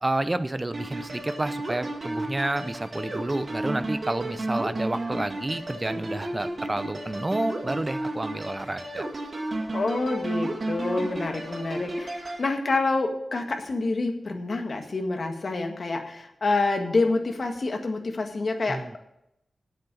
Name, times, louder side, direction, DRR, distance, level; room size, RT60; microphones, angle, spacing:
voice 1, 0.0-9.1 18.7-19.0, right 2 dB, 25° right, 11 dB, 0.7 m, -30 dB
sound 1, 0.7-12.4, right 2 dB, 45° right, 2.0 m, -33 dB
voice 2, 9.7-19.0, left 3 dB, 55° left, 4 dB, 1.8 m, -27 dB
9.6 x 7.8 x 8.8 m, 0.80 s
wide cardioid pair, 105°, 0 cm